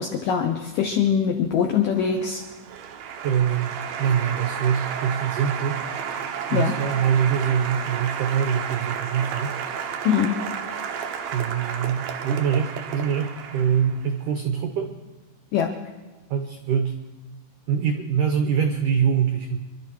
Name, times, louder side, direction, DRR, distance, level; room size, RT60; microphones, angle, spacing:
voice 1, 0.0-2.4 6.5-6.8 10.0-10.4 15.5-15.7, left 7 dB, 80° left, 5 dB, 1.9 m, -23 dB
Applause, 1.6-14.1, right 7 dB, 70° right, 2.6 m, -32 dB
voice 2, 3.2-5.8 6.5-9.5 11.3-14.9 16.3-17.0 17.7-19.6, right 8 dB, 85° right, 5 dB, 1.8 m, -24 dB
26.0 x 12.0 x 4.6 m, 1.2 s
omnidirectional pair, 5.0 m